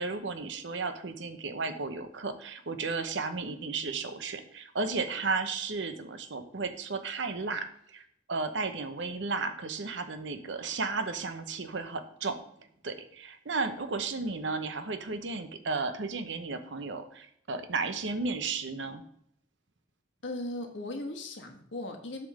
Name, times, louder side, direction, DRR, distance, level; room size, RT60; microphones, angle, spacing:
voice 1, 0.0-12.4 12.8-19.0, right 4 dB, 70° right, 9 dB, 0.8 m, -34 dB
voice 2, 20.2-22.3, left 2 dB, 75° left, 3 dB, 1.5 m, -37 dB
8.2 x 3.6 x 6.4 m, 0.71 s
head